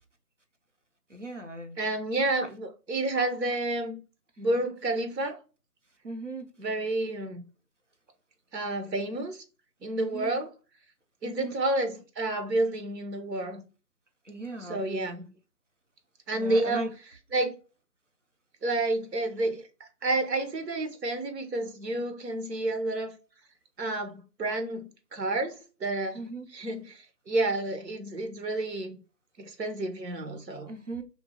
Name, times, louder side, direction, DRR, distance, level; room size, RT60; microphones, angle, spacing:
voice 1, 1.1-1.8 6.0-6.5 10.1-10.3 11.2-11.5 14.3-14.8 16.3-16.9 26.1-26.5 30.7-31.0, right 2 dB, 50° right, 0.5 m, -37 dB
voice 2, 1.8-4.0 4.4-5.4 6.6-7.4 8.5-9.4 9.8-10.5 11.2-13.6 14.6-15.2 16.3-16.9 17.3-17.5 18.6-23.1 23.8-29.0 29.4-30.7, right 2 dB, 80° right, 1.0 m, -30 dB
2.7 x 2.1 x 2.7 m
figure-of-eight pair, 175°, 49 cm